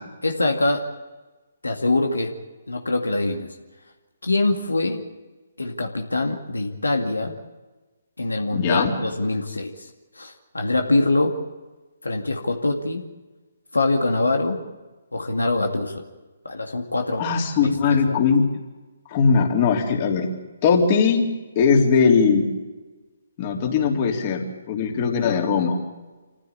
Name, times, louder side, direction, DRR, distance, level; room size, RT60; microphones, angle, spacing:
voice 1, 0.2-0.9 1.6-2.4 2.7-3.5 4.2-5.0 5.6-7.4 8.2-9.9 10.2-11.4 12.0-13.0 13.7-14.6 15.1-16.0 16.4-17.3 17.6-18.2, left 2 dB, 85° left, 3 dB, 2.3 m, -24 dB
voice 2, 8.5-8.9 17.2-18.4 19.1-20.3 20.6-21.3 21.6-22.5 23.4-25.8, left 5 dB, 35° left, 1 dB, 3.7 m, -20 dB
26.5 x 15.0 x 8.6 m, 1.2 s
figure-of-eight pair, 140°, 0 cm